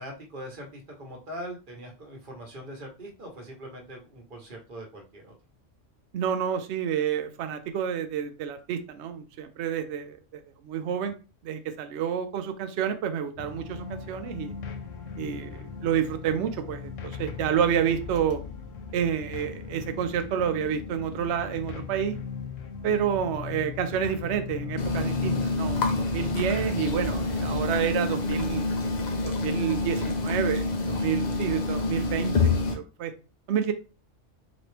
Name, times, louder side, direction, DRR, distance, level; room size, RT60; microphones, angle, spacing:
voice 1, 0.0-5.3, equal, 45° right, 0 dB, 1.1 m, -41 dB
voice 2, 6.1-11.1 11.4-14.5 15.2-18.4 18.9-22.1 22.8-25.8 26.1-28.7 29.2-30.7 31.0-33.1 33.5-33.7, right 8 dB, 65° right, 8 dB, 0.8 m, -29 dB
sound 1, 13.4-27.8, left 7 dB, 90° left, 1.1 m, -38 dB
sound 2, 24.8-32.7, left 3 dB, 45° left, 0.7 m, -27 dB
4.2 x 2.9 x 3.3 m, 0.32 s
omnidirectional pair, 1.3 m